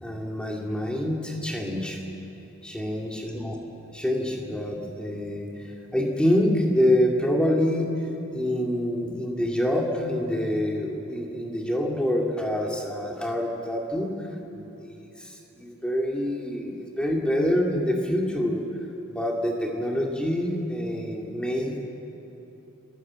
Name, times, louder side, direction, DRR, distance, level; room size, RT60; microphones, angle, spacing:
voice 1, 0.0-2.0 2.6-3.6 3.9-7.9 8.3-14.1 14.5-18.6 19.1-21.8, left 1 dB, 5° left, -1 dB, 2.5 m, -26 dB
30.0 x 15.5 x 7.6 m, 3.0 s
head